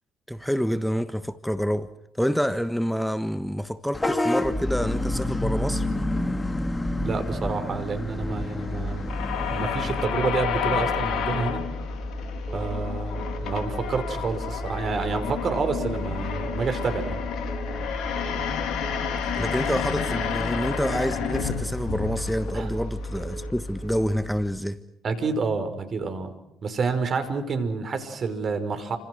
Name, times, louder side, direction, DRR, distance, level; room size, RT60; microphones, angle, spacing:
voice 1, 0.3-5.9 19.3-24.8, equal, ahead, 1.5 m, -27 dB
Vehicle horn car horn honking / Bus, 3.9-10.0, left 1 dB, 20° left, 3.4 m, -28 dB
voice 2, 7.0-9.0 9.5-11.6 12.5-17.2 19.4-19.5 22.5-22.7 25.0-26.3 26.6-29.0, right 4 dB, 50° right, 5.5 m, -28 dB
sound 1, 8.1-24.4, left 5 dB, 65° left, 3.9 m, -30 dB
sound 2, 10.0-10.4 10.7-11.1 11.3-11.7 12.5-12.9 13.2-13.6 13.8-14.2 15.0-15.4 15.7-16.1 16.3-16.7 17.5-17.9 18.2-18.6 18.8-19.2 20.0-20.4 20.7-21.1 21.3-21.7 22.5-22.9 23.2-23.6 23.8-24.2, right 6 dB, 35° right, 3.6 m, -41 dB
29.5 x 27.0 x 6.5 m
hypercardioid pair, 50°, 0 cm